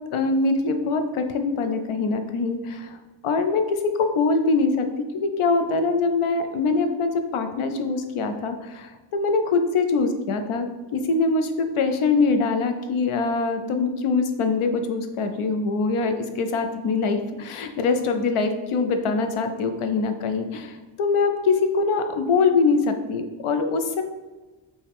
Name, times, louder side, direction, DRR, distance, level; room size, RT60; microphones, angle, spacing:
voice 1, 0.1-3.0 3.2-10.7 10.9-24.0, left 4 dB, 85° left, 7 dB, 0.6 m, -23 dB
5.4 x 2.2 x 3.4 m, 1.2 s
wide cardioid pair, 100°, 49 cm